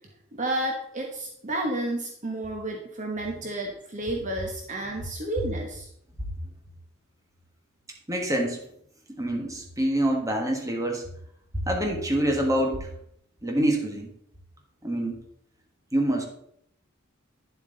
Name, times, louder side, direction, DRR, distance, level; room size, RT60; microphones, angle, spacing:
voice 1, 0.3-5.9, right 1 dB, 35° right, 1 dB, 1.2 m, -31 dB
voice 2, 8.1-8.6 9.2-11.0 11.7-12.9 13.4-14.1 14.8-15.2 15.9-16.2, right 1 dB, 15° right, 1 dB, 1.6 m, -26 dB
10.5 x 7.5 x 3.9 m, 0.71 s
head